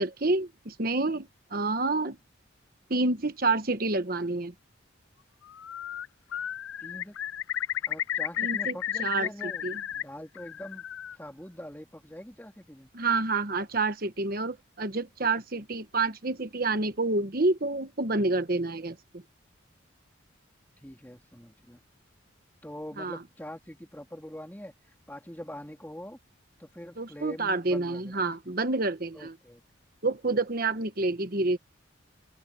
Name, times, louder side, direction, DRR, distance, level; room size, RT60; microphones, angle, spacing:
voice 1, 0.0-2.2 2.9-4.5 8.4-9.3 9.6-9.7 12.9-19.2 23.0-23.2 27.0-29.3 30.0-31.6, right 3 dB, 50° right, 1.2 m, -28 dB
Bird, 5.5-6.1 6.3-10.0 10.4-11.2, left 10 dB, 85° left, 0.4 m, -33 dB
voice 2, 6.8-7.2 7.9-9.6 9.9-10.9 11.1-12.9 20.8-21.8 22.6-24.7 25.1-26.2 26.6-28.4 29.1-29.6, equal, 10° left, 3.0 m, -43 dB
open air
head